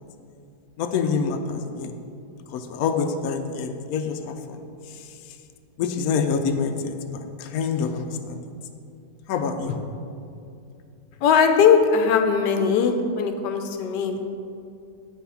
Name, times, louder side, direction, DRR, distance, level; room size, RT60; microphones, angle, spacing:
voice 1, 0.8-1.9 2.5-4.3 5.8-6.8 7.4-8.4 9.3-9.7, left 5 dB, 70° left, 6 dB, 1.0 m, -26 dB
voice 2, 11.2-14.3, left 6 dB, 90° left, 6 dB, 1.3 m, -20 dB
7.7 x 5.9 x 5.7 m, 2.5 s
omnidirectional pair, 1.8 m